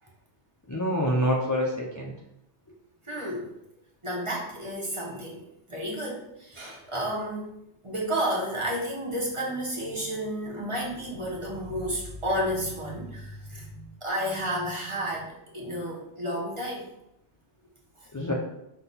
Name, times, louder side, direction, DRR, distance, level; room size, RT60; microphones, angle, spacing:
voice 1, 0.7-2.1 18.1-18.3, equal, 25° left, -3 dB, 0.4 m, -26 dB
voice 2, 3.1-3.5 4.0-7.5 7.8-16.9, equal, 30° right, -4 dB, 0.9 m, -31 dB
5.8 x 2.3 x 4.0 m, 0.84 s
omnidirectional pair, 1.2 m